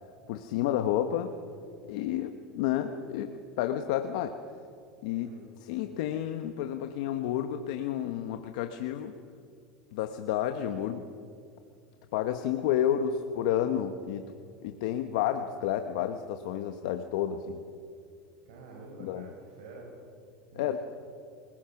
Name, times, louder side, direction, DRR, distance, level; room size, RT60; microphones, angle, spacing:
voice 1, 0.3-1.3 1.9-4.4 5.0-5.3 5.6-9.1 9.9-11.0 12.1-14.3 14.6-17.6 19.0-19.3 20.5-20.8, left 10 dB, 75° left, 7 dB, 1.2 m, -30 dB
voice 2, 5.1-5.5 18.5-19.9 20.5-20.8, right 3 dB, 80° right, -2 dB, 6.1 m, -48 dB
27.0 x 20.0 x 6.0 m, 2.3 s
supercardioid pair, 130°, 4 cm